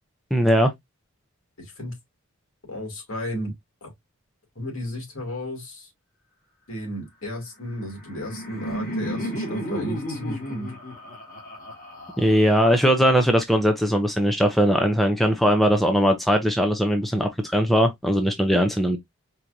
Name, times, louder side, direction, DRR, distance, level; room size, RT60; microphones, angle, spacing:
voice 1, 0.3-0.7 12.2-19.0, equal, ahead, 0.4 m, -20 dB
voice 2, 1.6-2.0 2.7-3.5 3.8-3.9 4.6-5.9 6.7-10.7, left 1 dB, 65° left, 2.4 m, -33 dB
Laughter, 7.7-12.7, equal, 40° left, 1.6 m, -33 dB
4.5 x 2.5 x 2.6 m
head